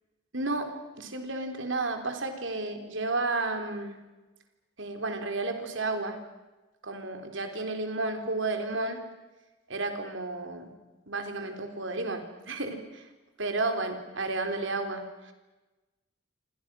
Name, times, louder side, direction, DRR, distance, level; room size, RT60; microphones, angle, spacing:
voice 1, 0.3-0.7 1.0-4.0 4.8-6.2 6.8-9.0 9.7-10.7 11.1-13.1 13.4-15.3, right 2 dB, 65° right, 6 dB, 3.9 m, -32 dB
29.0 x 26.0 x 6.3 m, 1.1 s
head